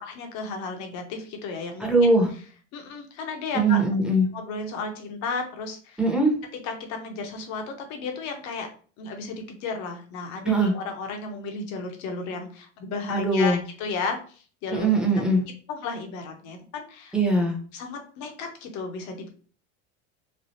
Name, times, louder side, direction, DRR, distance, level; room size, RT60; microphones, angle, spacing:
voice 1, 0.0-1.9 2.7-3.8 4.3-6.0 6.6-8.7 9.0-14.2 14.6-14.9 15.7-17.1 17.7-19.3, left 4 dB, 55° left, 4 dB, 0.9 m, -33 dB
voice 2, 1.8-2.3 3.5-4.3 6.0-6.3 10.4-10.7 13.1-13.6 14.7-15.4 17.1-17.6, right 2 dB, ahead, -1 dB, 0.9 m, -21 dB
3.3 x 2.4 x 2.7 m, 0.42 s
supercardioid pair, 100°, 33 cm